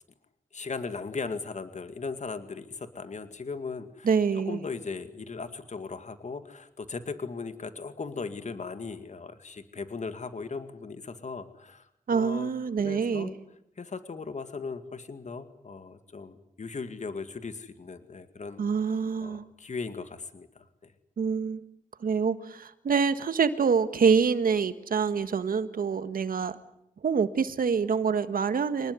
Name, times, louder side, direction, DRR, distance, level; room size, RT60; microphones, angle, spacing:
voice 1, 0.5-4.1 4.5-12.5 12.8-13.4 13.8-18.6 19.2-20.5, left 4 dB, 55° left, 10 dB, 2.1 m, -38 dB
voice 2, 4.0-4.6 12.1-13.3 18.6-19.4 21.2-21.6 22.0-26.5 27.0-28.9, right 6 dB, 85° right, 12 dB, 1.6 m, -26 dB
26.0 x 19.5 x 9.6 m, 0.78 s
wide cardioid pair, 70°, 14 cm